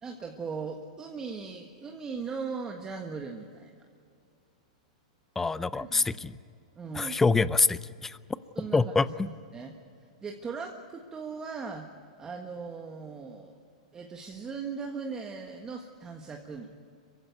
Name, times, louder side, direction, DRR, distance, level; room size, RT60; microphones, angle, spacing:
voice 1, 0.0-3.8 5.8-6.2 6.7-7.2 8.5-9.8 10.2-11.9 12.2-13.6 13.9-16.7, right 5 dB, 15° right, 3 dB, 1.5 m, -39 dB
voice 2, 5.4-6.3 6.9-8.2 8.7-9.1, left 4 dB, 10° left, 16 dB, 0.5 m, -25 dB
26.0 x 15.5 x 9.3 m, 2.3 s
hypercardioid pair, 145°, 4 cm